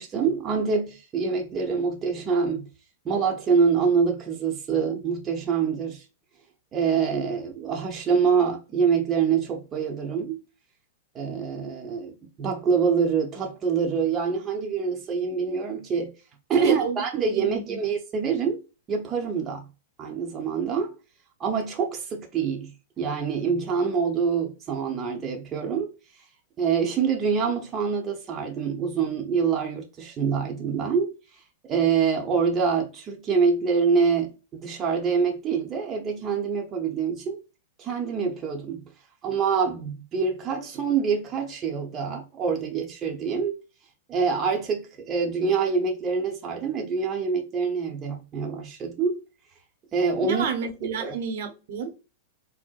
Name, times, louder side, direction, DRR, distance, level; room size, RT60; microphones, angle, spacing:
voice 1, 0.0-2.7 3.0-6.0 6.7-10.4 11.1-16.1 16.5-18.6 18.9-19.6 20.0-20.9 21.4-25.9 26.6-31.1 31.7-37.4 37.8-38.8 39.2-43.6 44.1-49.2 49.9-50.4 51.0-51.1, right 6 dB, 30° right, 0.8 m, -25 dB
voice 2, 16.6-17.8 50.2-51.9, right 6 dB, 65° right, 0.8 m, -31 dB
4.4 x 2.1 x 2.3 m
hypercardioid pair, 115°, 0 cm